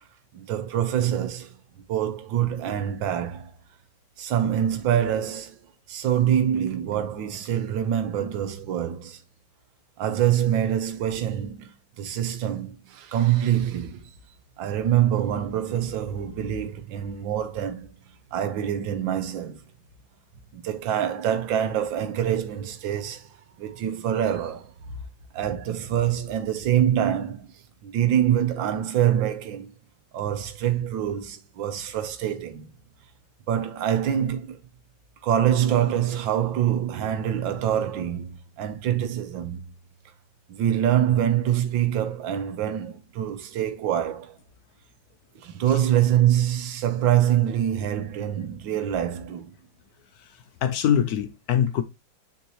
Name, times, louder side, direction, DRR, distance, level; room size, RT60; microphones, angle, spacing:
voice 1, 0.3-1.6 1.9-3.5 4.2-5.6 5.9-9.2 10.0-14.0 14.6-17.9 18.3-19.6 20.5-23.3 23.6-24.7 25.3-27.5 27.8-29.7 30.1-32.7 33.5-34.6 35.2-38.3 38.6-39.6 40.5-44.4 45.3-49.5, right 10 dB, 75° right, 1.6 m, -25 dB
voice 2, 50.6-51.8, left 9 dB, 75° left, 0.9 m, -23 dB
7.0 x 4.5 x 3.0 m
omnidirectional pair, 2.1 m